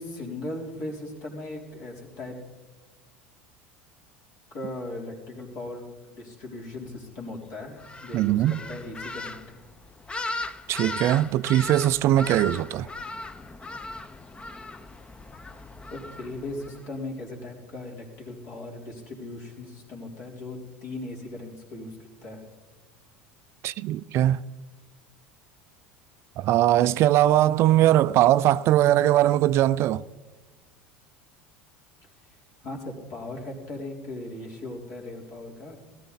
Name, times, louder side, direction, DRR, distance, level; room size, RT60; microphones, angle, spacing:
voice 1, 0.0-2.4 4.5-9.6 15.9-22.4 32.6-35.8, left 2 dB, 55° left, 3.8 m, -38 dB
sound 1, 7.8-16.9, left 2 dB, 15° left, 0.7 m, -38 dB
voice 2, 8.1-8.6 10.7-12.9 23.6-24.4 26.4-30.0, right 13 dB, 50° right, 0.4 m, -21 dB
17.0 x 13.5 x 4.1 m
hypercardioid pair, 75°, 6 cm